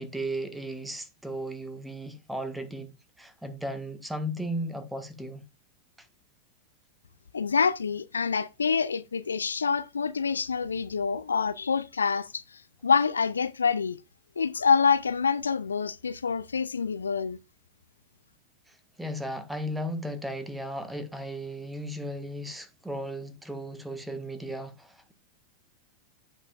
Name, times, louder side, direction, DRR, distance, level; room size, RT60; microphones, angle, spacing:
voice 1, 0.0-5.4 18.7-25.1, right 1 dB, 5° right, 1.3 m, -35 dB
voice 2, 7.3-14.0 14.4-17.4, left 5 dB, 75° left, 0.4 m, -26 dB
15.0 x 5.5 x 2.3 m
figure-of-eight pair, 90°, 0 cm